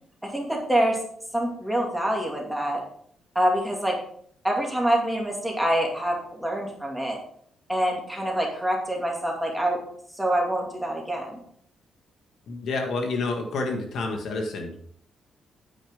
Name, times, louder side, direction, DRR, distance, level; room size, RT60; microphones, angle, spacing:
voice 1, 0.3-1.0 1.3-2.8 3.3-3.9 4.4-7.2 7.7-9.8 10.1-11.4, right 1 dB, ahead, -1 dB, 2.4 m, -25 dB
voice 2, 12.5-14.8, left 3 dB, 60° left, 3 dB, 1.7 m, -29 dB
9.3 x 9.2 x 3.6 m, 0.62 s
cardioid pair, 160°, 0 cm